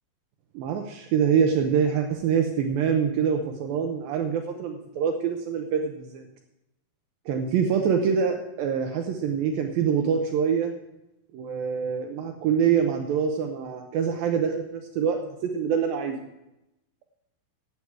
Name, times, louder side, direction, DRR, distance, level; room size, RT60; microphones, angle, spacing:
voice 1, 0.5-6.2 7.3-10.7 11.3-16.2, right 7 dB, 75° right, 4 dB, 2.6 m, -25 dB
17.5 x 8.0 x 4.7 m, 0.90 s
omnidirectional pair, 4.3 m